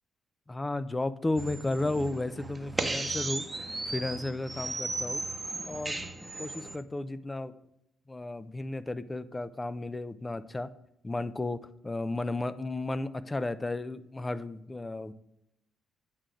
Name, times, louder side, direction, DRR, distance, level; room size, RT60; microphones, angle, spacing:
voice 1, 0.5-5.2 5.7-6.1 6.4-7.5 8.1-10.7 11.0-15.1, left 2 dB, 20° left, 15 dB, 0.5 m, -33 dB
sound 1, 1.4-6.8, right 2 dB, 15° right, 1.0 m, -36 dB
8.7 x 3.8 x 6.1 m, 0.81 s
cardioid pair, 90°, 0 cm